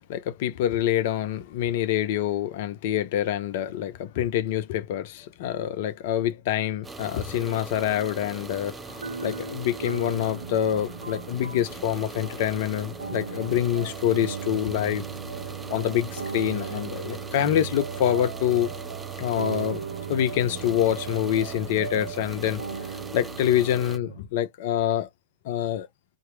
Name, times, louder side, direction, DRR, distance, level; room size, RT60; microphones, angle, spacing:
voice 1, 0.0-8.8 9.2-15.0 15.7-18.7 19.2-19.8 20.1-22.6 23.1-25.1 25.4-25.9, left 11 dB, 50° left, 0.7 m, -26 dB
sound 1, 6.8-24.0, right 3 dB, 10° right, 0.5 m, -41 dB
sound 2, 8.9-24.2, right 6 dB, 90° right, 0.4 m, -37 dB
2.9 x 2.5 x 3.1 m
hypercardioid pair, 120°, 0 cm